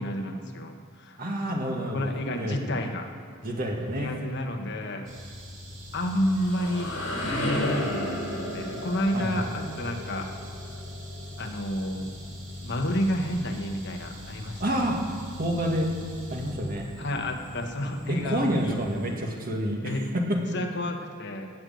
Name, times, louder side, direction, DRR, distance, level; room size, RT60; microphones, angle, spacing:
voice 1, 0.0-1.2 1.9-3.1 3.9-5.1 5.9-6.9 7.4-10.3 11.4-12.1 12.6-14.9 17.0-18.8 19.8-20.1 20.5-21.5, left 1 dB, 55° left, 4 dB, 1.2 m, -30 dB
voice 2, 1.2-2.6 3.4-4.1 9.1-9.5 14.6-15.0 15.4-15.9 16.3-16.9 18.1-20.3, equal, 45° right, 0 dB, 1.9 m, -28 dB
sound 1, 5.0-19.1, left 1 dB, 65° right, 3.2 m, -42 dB
sound 2, 6.1-11.8, left 1 dB, 70° left, 4.4 m, -32 dB
16.0 x 6.5 x 9.1 m, 2.3 s
head